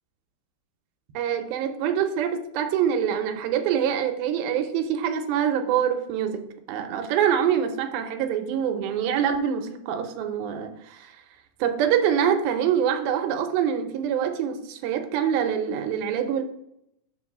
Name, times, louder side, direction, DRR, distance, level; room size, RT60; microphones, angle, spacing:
voice 1, 1.1-6.4 6.7-11.1 11.6-16.4, right 8 dB, 90° right, 6 dB, 2.6 m, -25 dB
6.9 x 3.9 x 6.0 m, 0.78 s
omnidirectional pair, 4.1 m